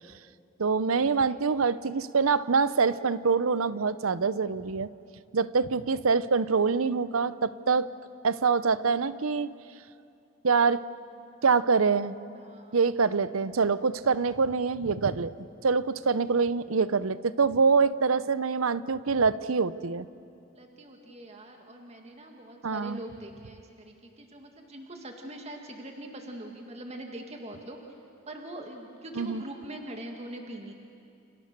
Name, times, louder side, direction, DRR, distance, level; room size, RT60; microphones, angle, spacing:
voice 1, 0.6-4.9 5.3-7.9 8.2-9.5 10.4-10.8 11.4-12.2 12.7-15.3 15.6-20.1 22.6-23.0 29.1-29.4, right 5 dB, 90° right, 16 dB, 0.7 m, -25 dB
voice 2, 12.3-12.8 20.5-27.8 28.3-30.7, right 1 dB, 30° right, 3 dB, 2.0 m, -43 dB
29.5 x 29.0 x 6.7 m, 2.6 s
head